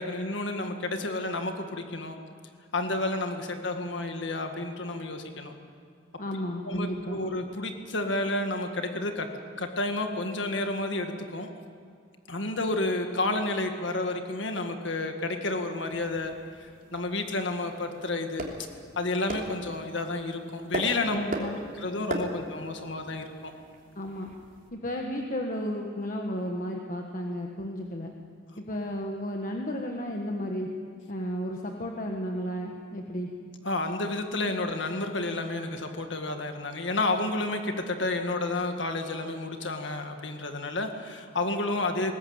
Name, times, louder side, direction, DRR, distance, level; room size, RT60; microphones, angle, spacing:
voice 1, 0.0-2.2 2.7-5.5 6.6-9.3 9.6-11.5 12.3-16.3 16.6-18.7 19.0-21.2 21.8-23.5 33.6-42.1, left 2 dB, 70° left, 5 dB, 1.9 m, -30 dB
voice 2, 6.2-7.2 21.1-21.6 23.9-24.3 24.7-28.1 28.6-30.7 31.1-33.3, equal, 45° left, 2 dB, 1.5 m, -33 dB
sound 1, 15.8-24.7, right 1 dB, 45° right, 3.1 m, -39 dB
21.0 x 18.5 x 8.9 m, 2.2 s
head